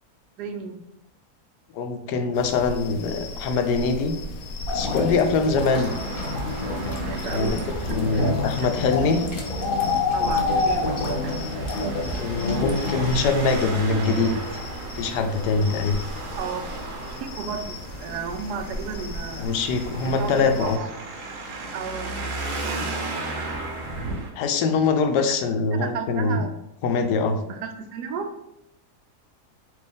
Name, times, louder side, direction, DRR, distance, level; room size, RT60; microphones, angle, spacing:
voice 1, 0.4-0.8 5.4-5.7 7.0-8.7 9.0-9.1 10.1-11.4 16.3-16.7 17.1-19.5 20.0-20.9 21.7-22.3 22.6-23.0 25.3-25.4 25.8-26.5 27.5-28.3, right 6 dB, 85° right, 6 dB, 1.2 m, -34 dB
voice 2, 1.7-4.2 4.7-6.0 7.2-7.6 7.9-9.2 12.2-14.4 15.0-16.0 19.4-20.8 24.3-26.5 26.8-27.4, left 4 dB, 90° left, 6 dB, 1.2 m, -23 dB
sound 1, 2.3-20.8, left 1 dB, 70° left, 1.1 m, -37 dB
sound 2, 4.7-13.2, left 3 dB, 50° left, 0.6 m, -27 dB
Traffic noise roadway noise, 5.6-24.3, right 2 dB, 60° right, 1.0 m, -36 dB
4.5 x 2.7 x 3.5 m, 0.82 s
omnidirectional pair, 1.7 m